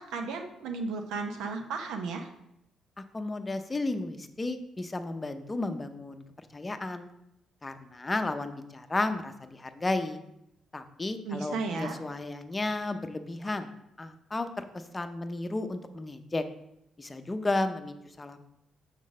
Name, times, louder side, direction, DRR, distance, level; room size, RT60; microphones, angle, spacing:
voice 1, 0.0-2.3 11.2-12.0, right 4 dB, 90° right, 4 dB, 0.8 m, -34 dB
voice 2, 3.0-6.2 6.5-7.1 7.6-10.2 10.7-13.7 14.0-16.4 17.0-18.4, left 2 dB, 20° left, 8 dB, 0.7 m, -33 dB
6.5 x 3.9 x 6.3 m, 0.81 s
cardioid pair, 90°, 0 cm